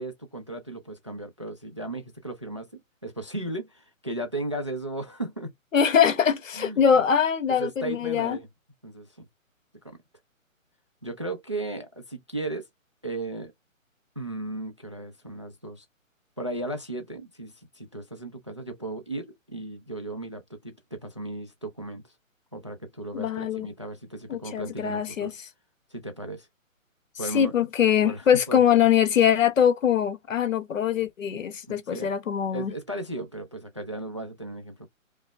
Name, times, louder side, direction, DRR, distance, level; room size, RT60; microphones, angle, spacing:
voice 1, 0.0-5.5 6.5-7.0 7.6-8.5 8.8-9.3 9.8-10.0 11.0-12.7 13.0-13.5 14.2-15.8 16.4-22.1 22.5-25.3 25.9-26.5 27.2-27.5 28.0-28.6 31.3-31.4 31.7-32.1 32.5-34.9, right 2 dB, 25° right, 0.4 m, -36 dB
voice 2, 5.7-8.4 23.1-23.7 24.3-25.3 27.3-32.7, left 8 dB, 70° left, 1.0 m, -22 dB
5.1 x 2.0 x 3.4 m
hypercardioid pair, 150°, 41 cm